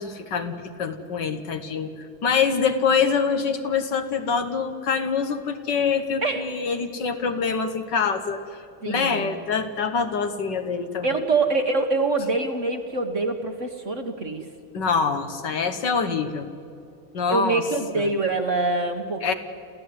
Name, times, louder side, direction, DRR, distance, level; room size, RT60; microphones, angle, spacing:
voice 1, 0.0-1.9 2.2-8.4 8.9-11.1 14.7-16.5 17.1-17.6 18.0-18.1 19.2-19.3, left 5 dB, 60° left, 8 dB, 1.9 m, -25 dB
voice 2, 8.8-9.3 11.0-14.4 17.3-19.3, right 3 dB, 40° right, 5 dB, 1.5 m, -25 dB
28.0 x 15.5 x 9.6 m, 2.6 s
omnidirectional pair, 2.3 m